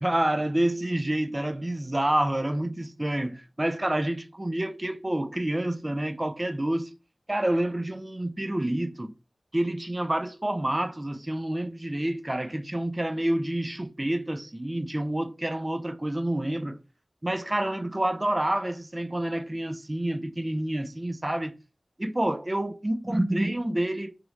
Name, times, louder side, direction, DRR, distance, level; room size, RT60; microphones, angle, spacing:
voice 1, 0.0-6.9 7.3-9.1 9.5-16.8 17.2-21.5 22.0-24.2, right 1 dB, 20° right, 0.3 m, -28 dB
3.0 x 2.4 x 3.1 m
wide cardioid pair, 70°, 0 cm